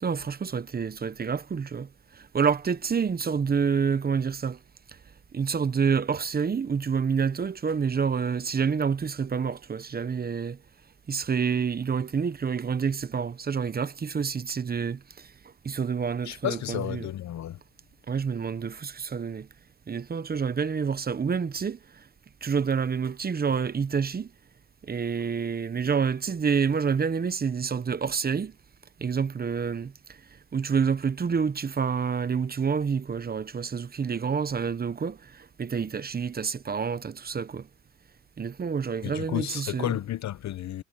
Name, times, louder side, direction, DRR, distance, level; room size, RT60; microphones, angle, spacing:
voice 1, 0.0-4.6 4.9-5.0 5.3-10.6 11.1-17.1 18.1-19.5 19.9-22.1 22.4-24.3 24.8-28.5 29.0-30.2 30.5-37.7 38.4-40.0, right 6 dB, 30° right, 0.9 m, -28 dB
voice 2, 16.3-17.6 39.0-40.8, left 13 dB, 65° left, 0.9 m, -32 dB
cardioid pair, 90°, 30 cm